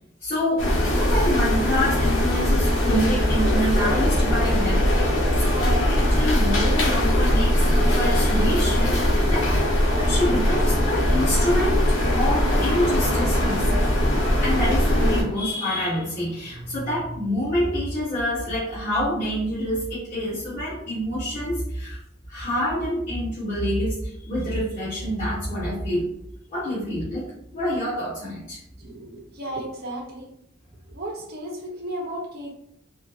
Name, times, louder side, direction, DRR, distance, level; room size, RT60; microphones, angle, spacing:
voice 1, 0.2-4.9 5.4-9.5 9.9-13.9 14.4-22.0 22.3-26.1 26.5-27.3 27.5-28.6, equal, 40° left, -10 dB, 1.3 m, -27 dB
sound 1, 0.6-15.2, left 1 dB, 75° left, 0.8 m, -21 dB
sound 2, 5.7-17.0, left 2 dB, 25° left, 0.7 m, -40 dB
voice 2, 28.8-30.3 30.9-32.5, right 1 dB, 50° right, -2 dB, 0.9 m, -34 dB
4.3 x 2.0 x 2.8 m, 0.74 s
head